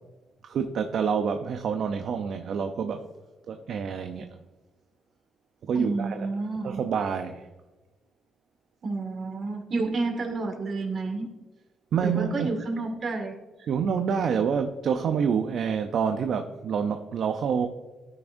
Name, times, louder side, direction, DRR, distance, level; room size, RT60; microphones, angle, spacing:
voice 1, 0.4-3.1 3.5-4.3 5.7-6.3 6.6-7.5 11.9-12.5 13.7-17.7, right 6 dB, 65° right, 7 dB, 0.6 m, -27 dB
voice 2, 5.7-6.8 8.8-11.3 12.0-13.7, right 3 dB, 50° right, 3 dB, 1.9 m, -30 dB
12.5 x 6.0 x 2.6 m, 1.2 s
cardioid pair, 90°, 0 cm